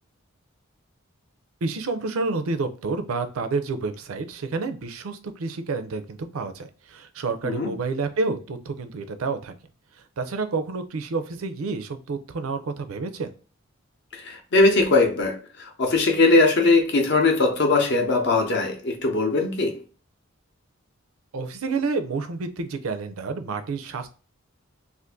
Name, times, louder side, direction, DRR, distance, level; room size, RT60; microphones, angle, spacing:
voice 1, 1.6-9.5 10.2-13.3 21.3-24.1, right 4 dB, 75° right, 0.5 m, -29 dB
voice 2, 14.1-19.8, left 3 dB, 50° left, 0.7 m, -20 dB
2.5 x 2.5 x 3.5 m
head